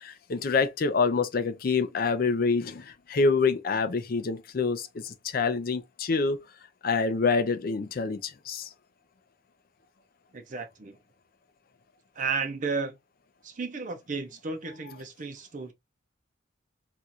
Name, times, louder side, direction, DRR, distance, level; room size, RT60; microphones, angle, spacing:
voice 1, 0.0-2.8 3.1-6.4 6.8-8.2 8.5-8.7, left 4 dB, 50° left, 0.4 m, -26 dB
voice 2, 10.3-11.0 12.2-12.9 13.4-15.7, right 4 dB, 40° right, 0.5 m, -33 dB
2.6 x 2.4 x 4.1 m
head